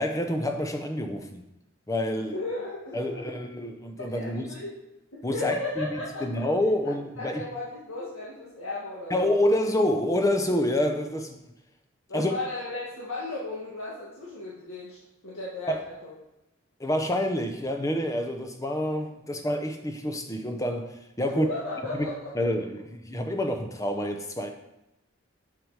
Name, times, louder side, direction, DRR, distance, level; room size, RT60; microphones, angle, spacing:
voice 1, 0.0-1.4 1.9-2.4 2.9-4.5 5.2-7.4 9.1-11.4 12.1-12.3 15.7-15.8 16.8-21.5 21.9-22.1 22.4-24.5, left 1 dB, 15° left, 0.7 m, -27 dB
voice 2, 2.2-3.2 4.1-4.8 5.3-6.3 6.9-9.4 12.1-15.0 15.2-16.1 21.3-22.3, left 2 dB, 85° left, 1.8 m, -35 dB
7.5 x 6.7 x 4.8 m
head